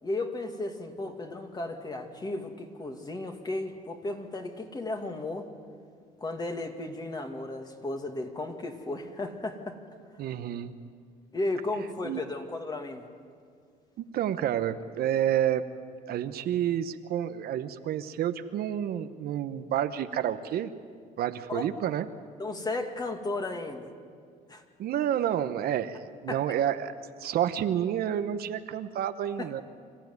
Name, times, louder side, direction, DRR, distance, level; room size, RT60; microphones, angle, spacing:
voice 1, 0.0-5.5 6.2-9.8 11.3-13.0 21.5-21.7 22.4-23.9 24.5-24.6 26.3-26.4 29.4-29.5, left 2 dB, 25° left, 5 dB, 2.3 m, -34 dB
voice 2, 10.2-10.7 12.0-12.2 14.0-15.6 16.1-20.7 21.2-22.1 24.8-26.9 27.2-29.6, right 10 dB, 65° right, 10 dB, 1.0 m, -29 dB
26.0 x 14.5 x 9.6 m, 2.1 s
cardioid pair, 110°, 17 cm